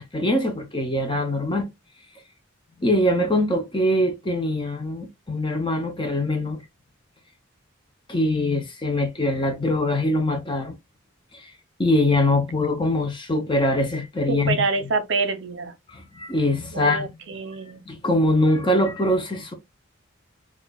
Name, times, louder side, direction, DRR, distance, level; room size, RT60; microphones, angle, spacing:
voice 1, 0.0-1.7 2.8-6.6 8.1-10.8 11.3-11.5 11.8-14.6 15.9-17.1 17.9-19.5, left 1 dB, 25° left, 0.7 m, -23 dB
voice 2, 14.3-15.7 16.7-17.8, right 3 dB, 60° right, 0.7 m, -26 dB
4.5 x 2.5 x 2.3 m
head